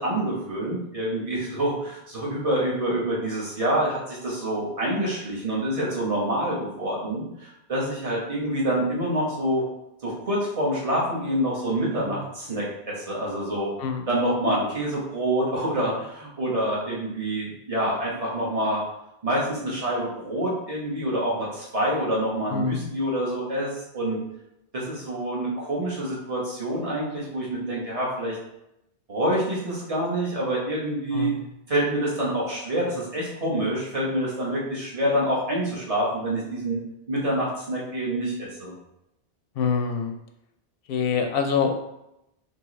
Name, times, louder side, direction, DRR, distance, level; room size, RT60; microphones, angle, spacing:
voice 1, 0.0-9.6 10.0-13.7 14.1-18.8 19.2-24.2 24.7-28.4 29.1-31.3 31.7-36.8 37.1-38.7, right 1 dB, 35° right, -6 dB, 1.3 m, -27 dB
voice 2, 22.5-22.9 31.1-31.5 39.6-40.1 40.9-41.7, left 6 dB, 65° left, 5 dB, 0.7 m, -26 dB
4.5 x 3.0 x 3.2 m, 0.85 s
omnidirectional pair, 1.1 m